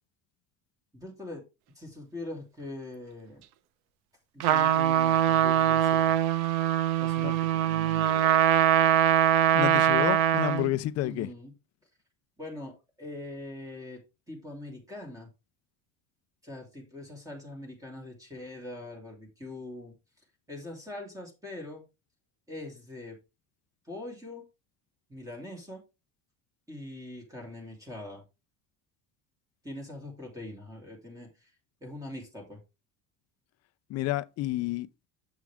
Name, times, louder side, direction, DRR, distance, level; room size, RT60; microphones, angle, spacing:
voice 1, 0.9-1.4 1.7-3.4 4.3-6.1 7.0-8.4 11.0-11.5 12.4-14.0 14.3-15.3 16.4-19.9 20.5-21.8 22.5-23.2 23.8-24.5 25.1-25.8 26.7-28.2 29.6-31.5 31.8-32.6, left 1 dB, 10° right, 2.7 m, -42 dB
Trumpet, 4.4-10.7, right 11 dB, 80° right, 0.9 m, -23 dB
voice 2, 9.5-11.3 33.9-34.9, left 15 dB, 45° left, 0.5 m, -30 dB
7.3 x 6.1 x 3.4 m
cardioid pair, 155°, 37 cm